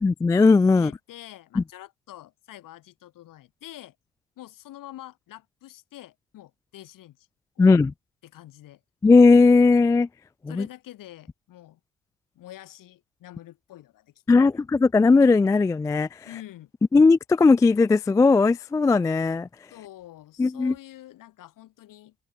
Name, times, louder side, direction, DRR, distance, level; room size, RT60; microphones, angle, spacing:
voice 1, 0.0-0.9 1.6-1.7 7.6-7.9 9.0-10.1 10.6-10.7 14.3-16.1 16.9-19.5 20.4-20.7, left 4 dB, 10° left, 0.3 m, -18 dB
voice 2, 0.7-4.0 4.4-7.3 7.6-7.8 8.2-8.8 10.5-11.8 12.3-14.5 16.2-16.7 19.7-22.1, left 14 dB, 55° left, 2.6 m, -46 dB
open air
figure-of-eight pair, 50°, 38 cm